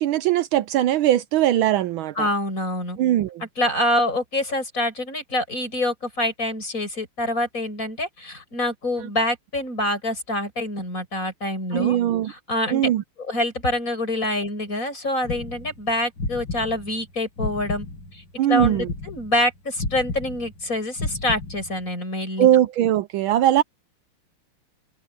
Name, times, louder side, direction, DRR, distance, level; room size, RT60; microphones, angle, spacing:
voice 1, 0.0-2.3 3.0-3.4 11.7-12.3 12.7-13.0 18.4-18.9 22.4-23.6, right 12 dB, 75° right, 1.4 m, -20 dB
voice 2, 2.2-3.0 3.6-12.0 12.3-12.9 13.2-17.9 18.1-18.2 18.5-22.5, left 1 dB, 35° left, 7.9 m, -26 dB
sound 1, 15.2-18.2 18.6-21.9, left 3 dB, 65° left, 3.9 m, -32 dB
omnidirectional pair, 2.4 m